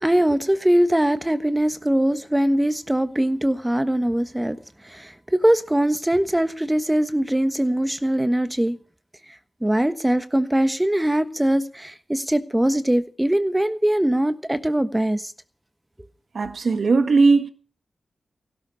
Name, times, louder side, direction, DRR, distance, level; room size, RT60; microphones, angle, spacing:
voice 1, 0.0-4.6 4.8-8.8 9.6-15.3, right 1 dB, 10° right, 1.3 m, -21 dB
voice 2, 16.3-17.5, right 4 dB, 70° right, 1.6 m, -18 dB
17.0 x 12.0 x 5.7 m
wide cardioid pair, 95°, 0 cm